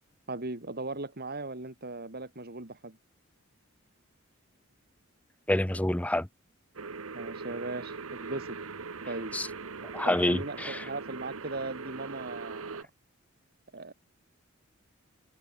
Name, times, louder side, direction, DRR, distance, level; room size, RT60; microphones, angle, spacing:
voice 1, 0.3-3.0 7.1-8.6 9.1-9.4 10.0-12.8 13.7-13.9, right 2 dB, 50° right, 3.0 m, -38 dB
voice 2, 5.5-6.3 9.3-9.5 9.9-10.8, left 1 dB, 5° left, 0.7 m, -27 dB
sound 1, 6.8-12.8, right 4 dB, 90° right, 1.2 m, -41 dB
head